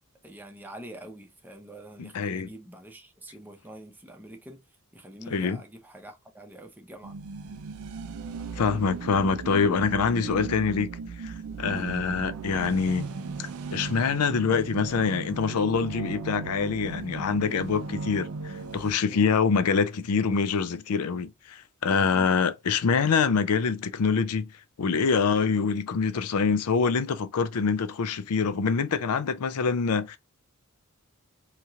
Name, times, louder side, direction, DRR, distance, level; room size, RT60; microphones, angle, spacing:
voice 1, 0.2-4.6 4.9-7.2 11.6-12.0 19.1-19.3 22.1-22.3, right 1 dB, 10° right, 0.6 m, -45 dB
voice 2, 2.0-2.5 5.3-5.6 8.6-10.9 11.2-13.1 13.4-24.5 24.8-30.2, left 5 dB, 85° left, 0.4 m, -25 dB
sound 1, 7.0-18.9, right 4 dB, 75° right, 0.4 m, -37 dB
2.9 x 2.9 x 2.4 m
head